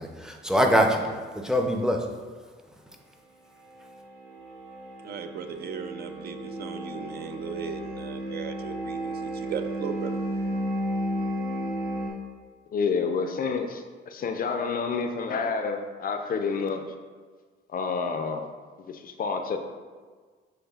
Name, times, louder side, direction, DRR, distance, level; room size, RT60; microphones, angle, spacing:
voice 1, 0.0-2.1, equal, 5° right, 2 dB, 0.5 m, -24 dB
sound 1, 3.6-12.1, right 1 dB, 70° right, 1.4 m, -33 dB
voice 2, 5.0-10.2, right 6 dB, 55° right, 7 dB, 0.4 m, -37 dB
voice 3, 12.7-16.9 17.7-18.5 18.9-19.6, left 5 dB, 45° left, 6 dB, 0.4 m, -29 dB
7.0 x 3.1 x 2.3 m, 1.5 s
cardioid pair, 90°, 20 cm